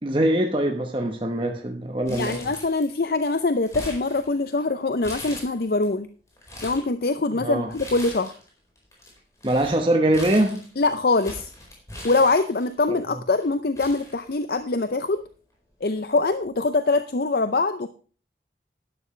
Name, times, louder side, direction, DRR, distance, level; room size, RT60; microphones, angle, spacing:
voice 1, 0.0-2.4 7.4-7.7 9.4-10.6 12.9-13.0, right 1 dB, 30° right, 3 dB, 1.0 m, -23 dB
voice 2, 2.1-6.1 6.6-8.3 10.8-11.5 12.0-15.2 15.8-17.9, left 3 dB, 60° left, 10 dB, 0.6 m, -23 dB
Crumpling crinkling, 2.1-3.1 3.3-4.6 5.0-5.9 6.3-6.9 7.7-8.5 8.8-12.8 13.4-13.5 13.8-14.8 15.1-15.2 16.2-16.4, left 1 dB, 20° left, 4.6 m, -40 dB
12.0 x 11.0 x 3.2 m, 0.38 s
head